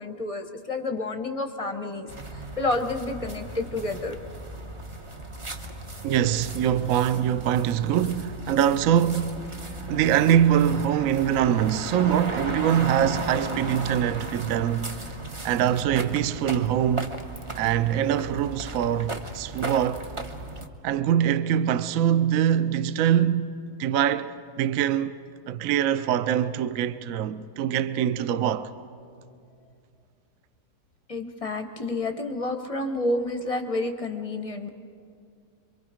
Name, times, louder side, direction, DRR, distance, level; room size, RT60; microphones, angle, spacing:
voice 1, 0.0-2.1 2.3-4.2 31.1-34.7, left 2 dB, 30° left, 0.7 m, -29 dB
sound 1, 2.1-20.7, right 2 dB, 30° right, 0.6 m, -36 dB
voice 2, 6.0-9.4 9.9-15.0 15.4-17.2 17.5-20.0 20.8-23.5 23.8-25.1 25.5-28.7, right 10 dB, 65° right, 0.9 m, -23 dB
26.5 x 23.5 x 5.0 m
omnidirectional pair, 1.9 m